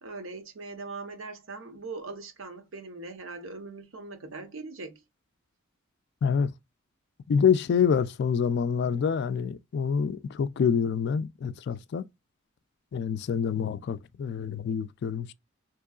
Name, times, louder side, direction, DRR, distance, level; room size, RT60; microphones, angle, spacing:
voice 1, 0.0-5.0, right 3 dB, 70° right, 0.8 m, -40 dB
voice 2, 7.3-12.1 12.9-15.3, left 7 dB, 55° left, 0.3 m, -26 dB
3.6 x 3.0 x 2.3 m
head